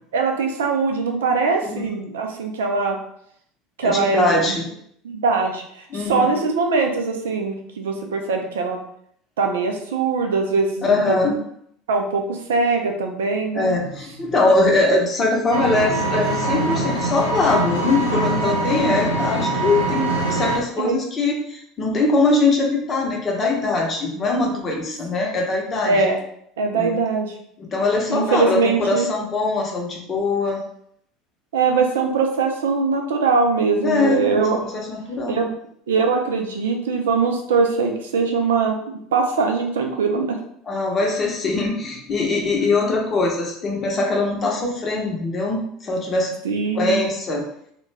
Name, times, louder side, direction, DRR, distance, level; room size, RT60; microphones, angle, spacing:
voice 1, 0.1-3.0 3.8-4.6 5.0-5.6 5.9-8.8 9.4-11.2 11.9-13.7 20.8-21.0 25.8-26.2 26.6-27.3 28.1-29.1 31.5-34.6 35.3-35.5 35.9-40.4 46.4-47.0, right 4 dB, 75° right, 3 dB, 0.4 m, -21 dB
voice 2, 1.6-2.0 3.8-4.7 5.9-6.3 10.8-11.4 13.5-25.9 26.7-26.9 27.6-30.6 33.8-34.5 34.7-35.5 40.7-46.3 46.7-47.5, left 2 dB, 30° left, 0 dB, 0.8 m, -22 dB
Engine, 15.5-20.6, right 2 dB, 90° left, 0.6 m, -23 dB
2.3 x 2.2 x 3.3 m, 0.68 s
figure-of-eight pair, 70°, 0 cm